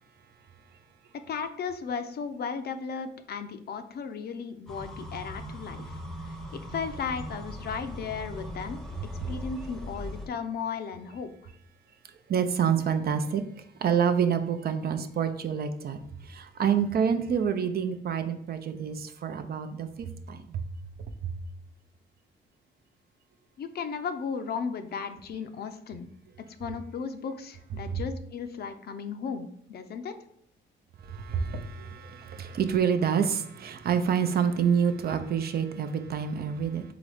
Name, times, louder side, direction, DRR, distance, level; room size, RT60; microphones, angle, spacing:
voice 1, 1.3-6.0 6.2-8.8 9.3-11.3 23.6-26.1 26.6-30.1, left 6 dB, 55° left, 9 dB, 0.5 m, -35 dB
sound 1, 4.7-10.3, equal, 5° left, 0.7 m, -39 dB
voice 2, 12.3-13.4 13.8-20.6 27.9-28.0 31.0-36.8, right 7 dB, 50° right, 8 dB, 0.5 m, -27 dB
3.9 x 3.6 x 3.4 m, 0.68 s
cardioid pair, 90°, 20 cm